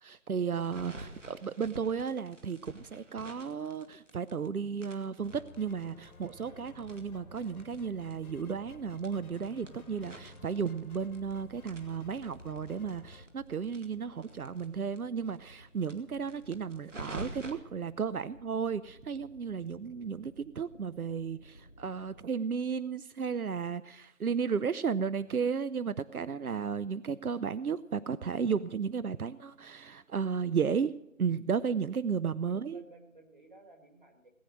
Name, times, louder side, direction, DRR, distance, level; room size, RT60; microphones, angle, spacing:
voice 1, 0.0-30.9 31.2-32.8, right 6 dB, 85° right, 16 dB, 0.7 m, -34 dB
sound 1, 0.6-4.5 4.8-7.8 8.1-8.2 8.4-8.5 8.9-11.3 11.6-14.7 14.9-15.0 15.3-15.4 15.8-17.5, right 1 dB, 60° right, 2.2 m, -47 dB
sound 2, 5.2-13.2, left 3 dB, 85° left, 1.5 m, -54 dB
sound 3, 6.5-22.3, equal, 40° left, 0.7 m, -57 dB
voice 2, 32.4-34.3, right 2 dB, 35° right, 3 dB, 2.2 m, -55 dB
19.0 x 8.8 x 6.3 m, 0.84 s
figure-of-eight pair, 175°, 43 cm